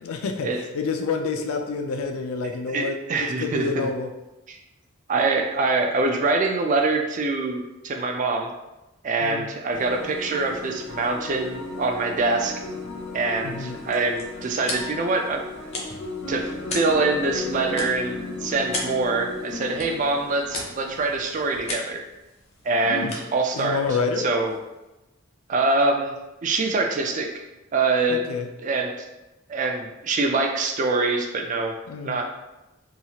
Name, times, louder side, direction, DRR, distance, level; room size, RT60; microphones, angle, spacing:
voice 1, 0.0-4.1 9.2-9.5 13.4-13.8 22.8-23.1 23.5-24.2 28.1-28.5 31.9-32.2, left 4 dB, 90° left, 5 dB, 0.4 m, -28 dB
voice 2, 2.4-3.9 4.5-4.6 5.1-8.5 9.0-12.5 13.1-15.4 16.3-22.0 22.6-24.6 25.5-26.2 26.4-27.3 27.7-28.2 28.6-28.9 29.5-31.7 32.0-32.3, right 3 dB, 35° right, 3 dB, 0.3 m, -24 dB
sound 1, 9.7-21.7, left 3 dB, 60° left, 0.8 m, -36 dB
sound 2, 13.6-24.8, left 2 dB, 30° left, 0.5 m, -38 dB
2.8 x 2.3 x 2.8 m, 0.99 s
head